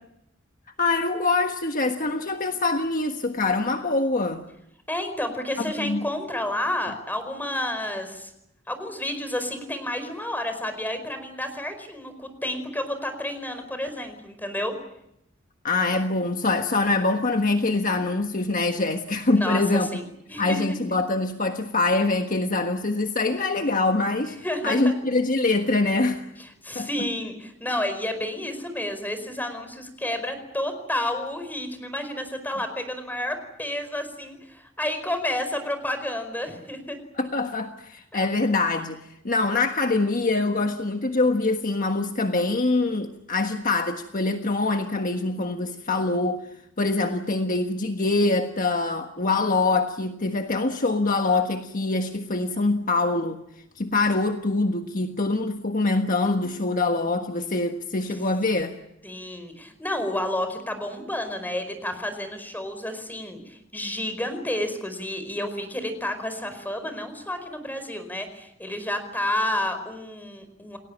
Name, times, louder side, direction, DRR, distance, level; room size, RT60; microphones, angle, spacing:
voice 1, 0.8-4.4 5.6-6.1 15.6-19.9 20.4-24.3 24.6-26.3 26.7-26.9 37.2-39.0 39.2-46.4 46.8-53.4 53.8-58.8, left 3 dB, 45° left, 5 dB, 1.4 m, -24 dB
voice 2, 4.9-8.3 8.7-14.7 19.3-20.0 20.3-20.8 24.2-24.9 26.6-37.0 38.1-38.3 59.0-70.8, left 1 dB, 10° left, 9 dB, 4.9 m, -30 dB
30.0 x 19.0 x 8.6 m, 0.79 s
head